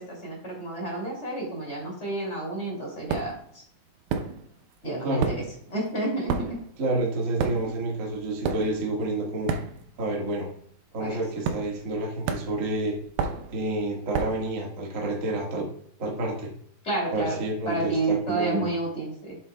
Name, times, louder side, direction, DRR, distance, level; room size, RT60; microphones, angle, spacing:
voice 1, 0.0-3.6 4.8-5.4 5.7-6.5 11.0-11.2 16.8-17.4 17.6-19.4, right 2 dB, 20° left, -3 dB, 2.7 m, -30 dB
sound 1, 3.1-3.5 4.1-4.7 5.0-10.1 10.4-10.7 11.4-12.0 12.3-14.5, right 5 dB, 85° right, 1.7 m, -31 dB
voice 2, 6.8-9.5 10.0-10.5 10.9-12.9 13.5-15.7 16.0-16.5 17.1-18.7, right 2 dB, 40° right, -1 dB, 1.1 m, -29 dB
8.7 x 7.1 x 2.3 m, 0.65 s
omnidirectional pair, 4.3 m